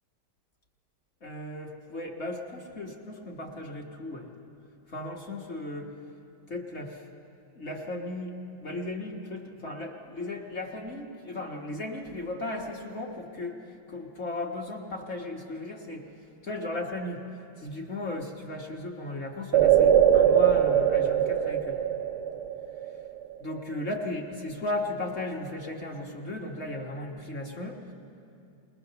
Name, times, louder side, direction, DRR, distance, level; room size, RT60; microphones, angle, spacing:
voice 1, 1.2-4.3 4.9-6.0 6.5-7.1 7.5-21.8 23.4-27.9, left 1 dB, 35° left, 1 dB, 1.6 m, -36 dB
sound 1, 19.5-23.2 23.6-23.7, right 9 dB, 65° right, 1.1 m, -22 dB
21.0 x 19.0 x 6.9 m, 2.6 s
omnidirectional pair, 2.3 m